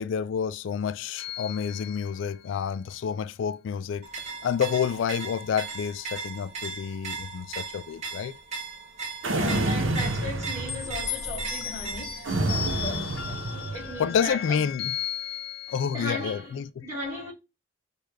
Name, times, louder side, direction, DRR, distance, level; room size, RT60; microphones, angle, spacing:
voice 1, 0.0-4.1 4.4-8.3 14.0-15.0 15.7-16.9, left 7 dB, 75° left, 0.3 m, -29 dB
sound 1, 1.2-2.7 10.7-16.4, left 9 dB, 55° left, 0.8 m, -36 dB
sound 2, 4.0-12.3, right 4 dB, 35° right, 0.8 m, -38 dB
sound 3, 9.2-11.1 12.3-14.1, right 2 dB, 85° right, 0.9 m, -28 dB
voice 2, 9.3-14.6 15.9-17.3, left 1 dB, 15° right, 3.0 m, -37 dB
6.4 x 2.4 x 3.3 m
head